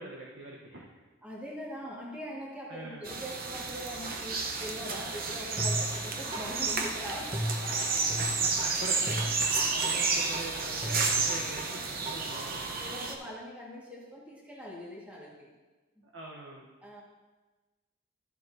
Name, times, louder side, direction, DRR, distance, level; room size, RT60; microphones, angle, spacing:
voice 1, 0.0-1.1 2.7-3.1 8.1-12.6 16.1-16.6, right 2 dB, 70° right, -3 dB, 1.1 m, -44 dB
voice 2, 1.2-7.5 9.9-10.0 12.8-15.5 16.0-16.1 16.8-17.0, equal, 10° right, -5 dB, 1.7 m, -42 dB
sound 1, 3.0-13.1, right 4 dB, 45° right, 0.8 m, -31 dB
sound 2, 5.6-12.4, equal, 25° right, 1.0 m, -36 dB
13.0 x 7.6 x 2.7 m, 1.2 s
head